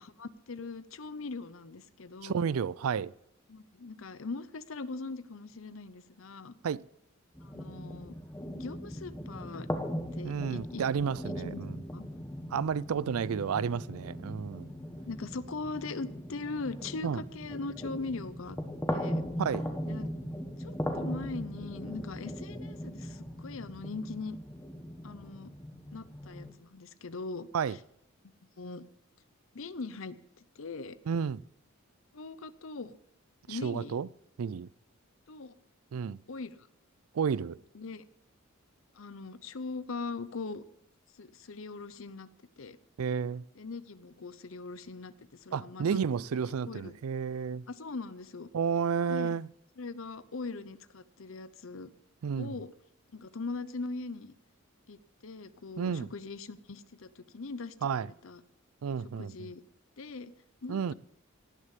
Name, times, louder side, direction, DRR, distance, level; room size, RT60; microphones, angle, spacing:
voice 1, 0.0-2.5 3.5-6.5 7.4-8.1 8.5-9.7 10.2-10.8 11.4-11.6 11.9-12.1 15.1-18.6 18.9-19.3 19.9-20.1 20.6-24.4 25.0-25.5 25.9-27.8 28.6-28.9 29.5-30.2 30.6-31.0 32.1-33.0 33.5-34.0 35.3-35.5 36.3-36.7 37.7-38.0 38.9-40.6 41.2-42.3 42.6-42.8 43.6-46.0 46.3-46.9 47.7-48.5 49.1-49.3 49.8-51.9 52.4-52.7 53.1-54.3 54.9-57.7 58.0-58.4 59.2-59.6 60.0-60.3 60.6-60.9, left 3 dB, 70° left, 0.7 m, -41 dB
voice 2, 2.2-3.1 6.6-6.8 10.2-11.8 12.5-14.7 17.0-17.2 19.4-19.6 27.5-27.8 31.1-31.4 33.5-34.1 34.4-34.7 35.9-36.2 37.1-37.6 43.0-43.4 45.5-47.6 48.5-49.5 52.2-52.6 55.8-56.1 57.8-58.1 58.8-59.5 60.7-60.9, right 6 dB, 85° right, 0.4 m, -31 dB
sound 1, 7.4-26.5, equal, 10° left, 1.4 m, -39 dB
18.0 x 6.5 x 8.3 m
head